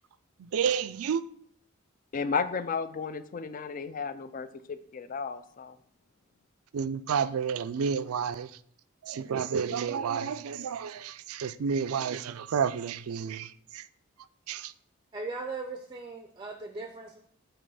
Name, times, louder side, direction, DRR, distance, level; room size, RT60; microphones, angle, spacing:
voice 1, 0.4-1.2 6.7-8.6 9.0-13.9 14.5-14.7, right 7 dB, 85° right, 0.4 m, -30 dB
voice 2, 2.1-5.8, left 5 dB, 40° left, 0.4 m, -33 dB
voice 3, 15.1-17.2, right 3 dB, 20° right, 0.4 m, -38 dB
8.6 x 3.0 x 5.4 m
head